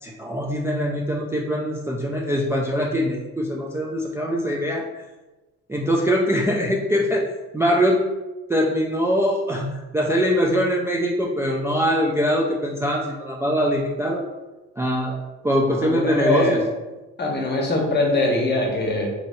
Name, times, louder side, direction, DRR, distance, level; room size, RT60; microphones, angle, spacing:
voice 1, 0.0-5.0 5.7-8.0 8.5-14.2 14.8-15.2 15.4-16.6, equal, 10° right, -2 dB, 0.3 m, -23 dB
voice 2, 15.8-16.7 17.2-19.1, left 2 dB, 35° left, 0 dB, 0.8 m, -22 dB
3.0 x 2.8 x 2.7 m, 1.1 s
cardioid pair, 80°, 30 cm